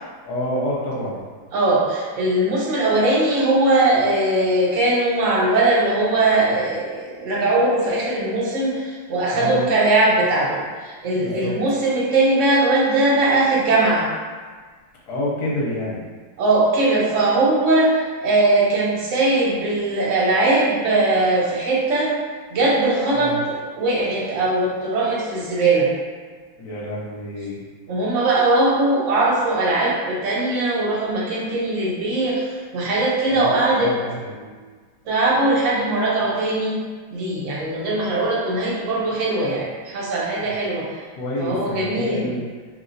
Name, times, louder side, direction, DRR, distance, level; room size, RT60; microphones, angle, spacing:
voice 1, 0.3-1.2 9.3-9.6 11.1-11.5 15.1-16.0 23.2-23.4 26.6-27.6 33.3-34.6 41.2-42.4, left 1 dB, 65° left, -5 dB, 1.1 m, -28 dB
voice 2, 1.5-14.1 16.4-22.1 22.5-25.9 27.9-33.9 35.1-36.8 37.1-40.9 41.4-42.3, right 2 dB, 70° right, -5 dB, 0.7 m, -20 dB
3.0 x 2.9 x 2.6 m, 1.5 s
omnidirectional pair, 2.2 m